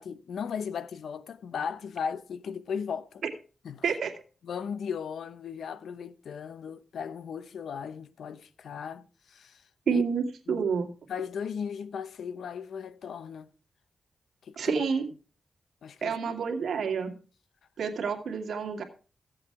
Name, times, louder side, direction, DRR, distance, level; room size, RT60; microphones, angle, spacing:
voice 1, 0.0-3.2 3.6-3.9 4.4-10.0 10.5-10.6 11.1-13.5 14.4-14.8 15.8-16.3, left 7 dB, 90° left, 0.7 m, -37 dB
voice 2, 9.9-10.9 14.6-15.1 16.0-17.1 17.8-18.8, right 6 dB, 85° right, 2.3 m, -29 dB
15.5 x 7.8 x 4.7 m
cardioid pair, 65°, 0 cm